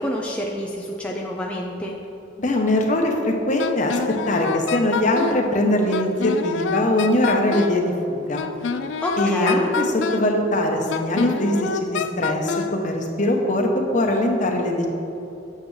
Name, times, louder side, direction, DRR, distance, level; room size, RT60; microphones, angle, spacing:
voice 1, 0.0-2.0 9.0-9.7, left 1 dB, 5° left, -2 dB, 0.5 m, -28 dB
voice 2, 2.4-4.0 4.3-8.4 9.2-9.8 10.1-14.9, left 1 dB, 40° left, 2 dB, 0.9 m, -21 dB
Wind instrument woodwind instrument, 3.6-5.5 5.9-7.8 8.4-10.3 10.9-12.8, left 6 dB, 70° left, 0.4 m, -27 dB
8.4 x 7.4 x 3.3 m, 3.0 s
head